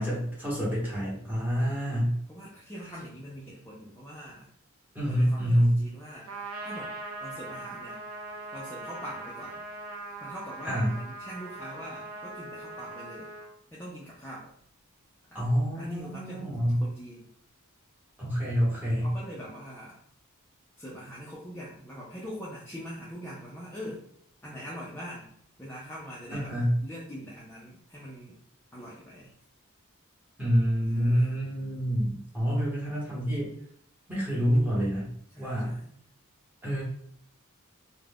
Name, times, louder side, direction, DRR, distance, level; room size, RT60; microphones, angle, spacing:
voice 1, 0.0-2.2 4.9-5.8 10.6-11.0 15.3-16.8 18.2-19.1 26.3-26.7 30.4-33.5 34.1-35.1 35.4-35.8 36.6-36.8, equal, 10° right, -7 dB, 1.0 m, -27 dB
voice 2, 1.6-1.9 2.3-4.5 5.1-6.3 6.6-8.1 8.5-9.6 10.2-13.3 13.7-14.5 15.3-15.5 15.7-17.3 18.7-20.0 20.8-24.0 24.4-25.3 25.6-28.4 28.7-29.3 30.8-31.5 35.3-36.0, equal, 10° left, -7 dB, 0.4 m, -43 dB
Trumpet, 6.3-13.5, right 2 dB, 75° right, 0.5 m, -41 dB
2.3 x 2.1 x 3.4 m, 0.65 s
head